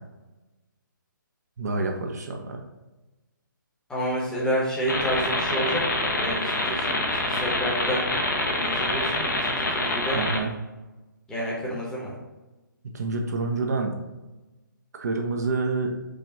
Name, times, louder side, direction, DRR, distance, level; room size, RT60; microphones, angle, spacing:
voice 1, 1.6-2.6 10.1-10.5 12.9-13.9 14.9-16.0, right 3 dB, 50° right, 2 dB, 0.6 m, -27 dB
voice 2, 3.9-8.0 8.5-10.2 11.3-12.1, equal, 5° left, -6 dB, 0.9 m, -29 dB
sound 1, 4.9-10.4, left 1 dB, 65° left, 0.8 m, -26 dB
4.9 x 2.4 x 3.8 m, 1.1 s
figure-of-eight pair, 140°, 11 cm